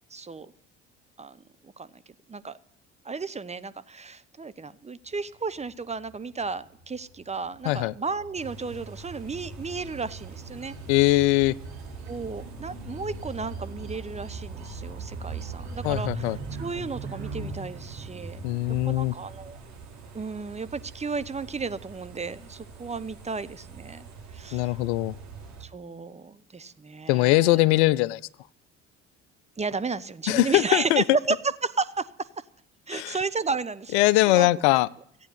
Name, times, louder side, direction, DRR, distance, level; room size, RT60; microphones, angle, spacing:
voice 1, 0.1-0.5 1.2-1.4 1.6-2.0 2.3-2.6 3.0-10.7 12.1-16.3 16.6-18.4 18.9-19.6 20.1-24.1 24.3-24.8 25.6-27.6 29.6-31.4 31.6-32.3 32.9-34.0 34.2-34.8, right 4 dB, 20° right, 14 dB, 0.8 m, -33 dB
sound 1, 5.1-17.6, right 2 dB, 80° right, 2.4 m, -43 dB
sound 2, 8.4-25.6, right 5 dB, 50° right, 3.6 m, -42 dB
voice 2, 10.9-11.5 15.8-16.4 18.4-19.1 24.5-25.1 27.1-28.2 30.3-31.0 32.9-33.2 33.9-34.9, left 18 dB, 75° left, 19 dB, 0.6 m, -21 dB
15.0 x 9.3 x 8.0 m, 0.70 s
hypercardioid pair, 55°, 34 cm